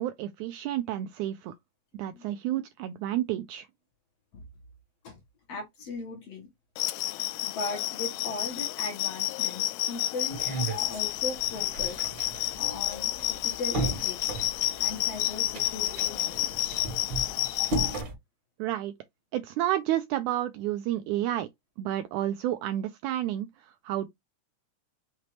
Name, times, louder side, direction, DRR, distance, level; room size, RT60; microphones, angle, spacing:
voice 1, 0.0-1.5 2.0-3.7 18.6-18.9 19.3-21.5 21.8-23.5 23.9-24.1, right 13 dB, 85° right, 1.7 m, -30 dB
voice 2, 1.9-2.3 4.3-4.4 5.0-5.2 5.5-6.5 7.4-10.4 10.8-12.1 12.6-14.2 14.8-16.8, left 3 dB, 55° left, 2.2 m, -38 dB
sound 1, 6.8-18.0, left 15 dB, 80° left, 1.9 m, -30 dB
sound 2, 10.3-18.1, right 2 dB, 45° right, 1.9 m, -36 dB
5.9 x 2.9 x 3.1 m
omnidirectional pair, 3.9 m